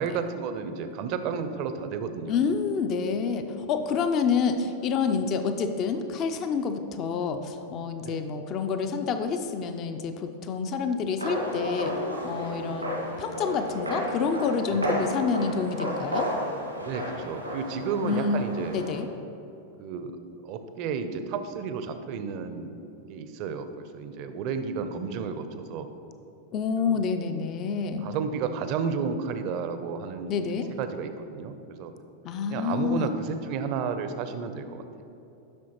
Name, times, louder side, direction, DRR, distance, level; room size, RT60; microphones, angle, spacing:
voice 1, 0.0-2.4 8.0-8.2 14.7-15.1 16.8-18.8 19.8-22.8 23.1-23.7 23.9-25.9 26.8-27.0 28.0-30.3 30.8-31.9 32.5-35.0, right 6 dB, 45° right, 9 dB, 0.6 m, -32 dB
voice 2, 2.3-12.0 12.2-16.3 18.0-18.4 18.7-19.1 26.5-28.1 30.3-30.7 32.2-33.2, left 5 dB, 35° left, 7 dB, 0.5 m, -28 dB
sound 1, 11.2-19.0, left 1 dB, 90° right, 1.6 m, -32 dB
12.0 x 6.1 x 3.0 m, 2.9 s
figure-of-eight pair, 90°, 0 cm